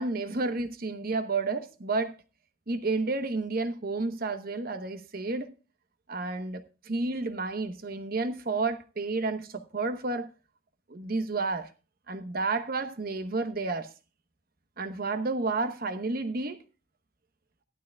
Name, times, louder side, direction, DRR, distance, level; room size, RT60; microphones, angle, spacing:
voice 1, 0.0-2.2 2.7-5.5 6.1-10.3 10.9-11.7 12.1-13.9 14.8-16.6, right 3 dB, 45° right, 1.0 m, -31 dB
15.0 x 12.0 x 2.3 m
head